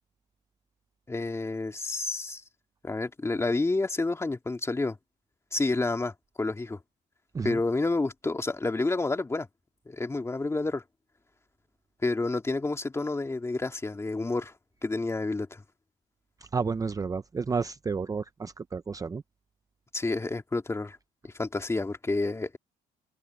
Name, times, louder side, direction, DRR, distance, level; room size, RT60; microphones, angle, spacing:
voice 1, 1.1-2.4 2.8-5.0 5.5-6.1 6.4-6.8 7.4-9.5 9.9-10.8 12.0-14.5 14.8-15.6 19.9-21.0 21.2-22.6, left 3 dB, 15° left, 2.3 m, -29 dB
voice 2, 16.5-19.2, right 5 dB, 20° right, 0.6 m, -31 dB
cardioid pair, 110°, 17 cm